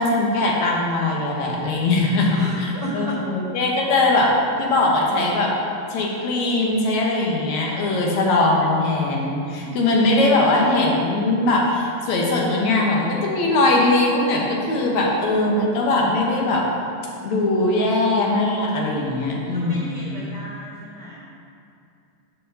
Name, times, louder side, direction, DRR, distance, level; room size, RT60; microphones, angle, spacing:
voice 1, 0.0-5.5 5.9-16.7 17.2-20.2, left 2 dB, 65° left, -2 dB, 2.3 m, -20 dB
voice 2, 2.3-3.2 9.6-10.2 18.8-21.2, right 1 dB, 40° right, -7 dB, 1.7 m, -35 dB
7.6 x 5.3 x 6.8 m, 2.5 s
omnidirectional pair, 3.8 m